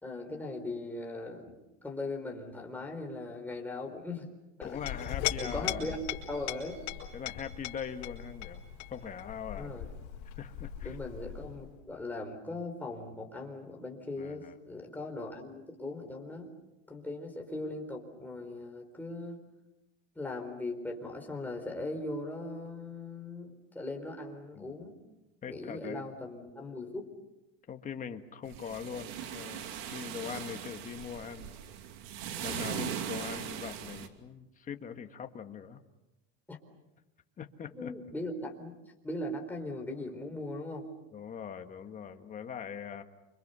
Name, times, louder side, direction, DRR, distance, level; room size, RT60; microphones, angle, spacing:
voice 1, 0.0-4.3 4.6-4.8 5.4-6.0 6.3-6.8 9.6-9.9 10.8-16.5 16.9-19.4 20.2-25.0 25.5-27.1 32.6-32.9 36.5-36.6 37.7-38.7 39.0-40.9, left 2 dB, 5° left, 2 dB, 4.4 m, -39 dB
Chink clink, 4.6-11.7, left 11 dB, 60° left, 4.7 m, -39 dB
voice 2, 4.6-6.0 7.1-8.6 8.9-9.8 10.4-11.0 14.2-14.5 24.6-24.8 25.4-26.0 27.7-31.5 32.4-35.8 37.4-37.9 41.1-43.0, left 7 dB, 25° left, 6 dB, 1.7 m, -42 dB
sound 1, 28.4-34.1, right 9 dB, 70° right, 2.7 m, -39 dB
29.0 x 25.5 x 6.9 m, 0.98 s
cardioid pair, 145°, 31 cm